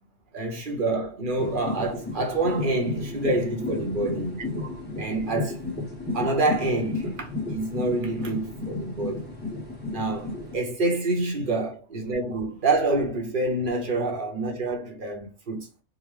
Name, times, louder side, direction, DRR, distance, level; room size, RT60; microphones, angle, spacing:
voice 1, 0.3-5.6 6.1-9.3 9.9-15.7, right 2 dB, 50° right, 1.1 m, -27 dB
sound 1, 1.4-10.6, left 3 dB, 10° left, 0.9 m, -33 dB
3.9 x 2.1 x 3.2 m
omnidirectional pair, 1.1 m